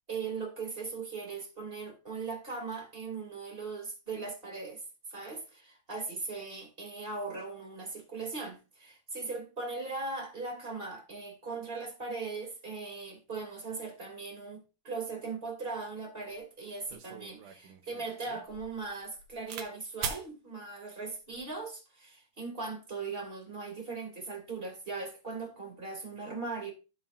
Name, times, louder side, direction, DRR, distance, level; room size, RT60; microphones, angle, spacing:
voice 1, 0.1-4.8 5.1-26.7, right 4 dB, 20° right, 2.6 m, -39 dB
sound 1, 16.3-16.4 16.9-19.7 20.0-20.3 21.1-21.5, right 7 dB, 80° right, 2.5 m, -41 dB
14.0 x 5.6 x 2.6 m
omnidirectional pair, 3.6 m